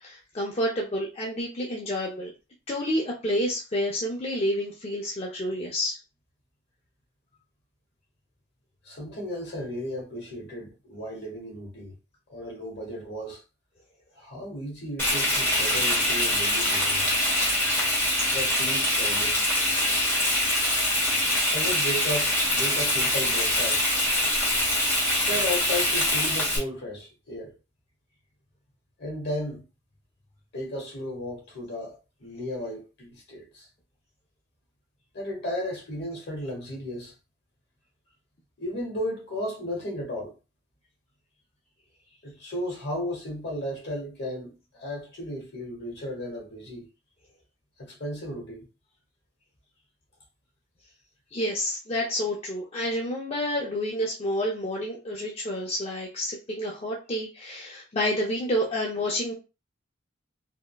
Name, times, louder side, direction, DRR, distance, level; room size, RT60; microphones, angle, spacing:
voice 1, 0.0-2.3 2.7-6.0 51.3-59.3, equal, 30° left, 0.5 m, -29 dB
voice 2, 8.8-11.9 12.3-13.4 14.1-17.1 18.3-19.4 21.5-23.8 25.1-27.5 29.0-29.6 30.5-33.7 35.1-37.1 38.6-40.3 42.2-46.8 47.8-48.6, equal, 60° left, 1.1 m, -34 dB
Frying (food), 15.0-26.6, left 1 dB, 15° left, 1.2 m, -24 dB
3.6 x 2.0 x 2.3 m
head